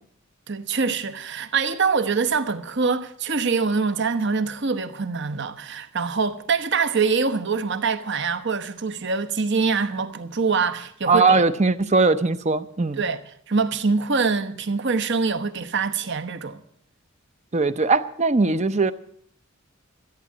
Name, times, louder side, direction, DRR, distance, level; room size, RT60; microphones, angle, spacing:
voice 1, 0.5-11.4 13.0-13.2 13.5-16.6, right 4 dB, 55° right, 1.0 m, -24 dB
voice 2, 11.1-13.0 17.5-18.9, right 3 dB, 35° right, 0.7 m, -20 dB
14.0 x 9.3 x 8.4 m
head